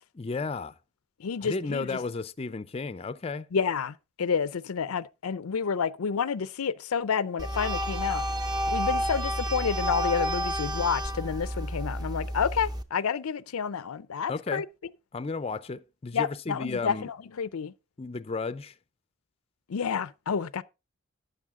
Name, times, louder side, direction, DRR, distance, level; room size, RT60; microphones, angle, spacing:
voice 1, 0.2-0.7 1.4-3.5 14.3-14.6 15.1-17.1 18.0-18.7, left 4 dB, 30° left, 0.4 m, -33 dB
voice 2, 1.2-2.0 3.5-8.2 8.7-14.7 16.1-17.7 19.7-20.6, left 6 dB, 90° left, 0.5 m, -29 dB
sound 1, 7.4-12.8, equal, 20° right, 0.7 m, -30 dB
12.0 x 8.2 x 3.6 m
head